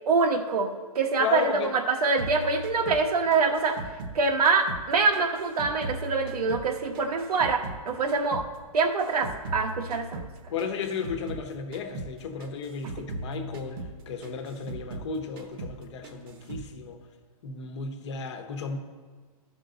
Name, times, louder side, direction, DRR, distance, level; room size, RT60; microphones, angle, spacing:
voice 1, 0.1-3.8 4.1-8.4 8.7-10.2, right 4 dB, 85° right, 5 dB, 1.2 m, -25 dB
voice 2, 1.2-1.7 10.5-17.0 17.4-18.8, left 5 dB, 50° left, 6 dB, 1.1 m, -34 dB
sound 1, 2.2-4.9 5.1-7.8 8.1-11.5 11.7-12.1 12.4-15.1 15.4-15.8 16.0-16.7, right 2 dB, 40° right, 1.0 m, -38 dB
13.5 x 6.1 x 3.9 m, 1.4 s
hypercardioid pair, 165°, 19 cm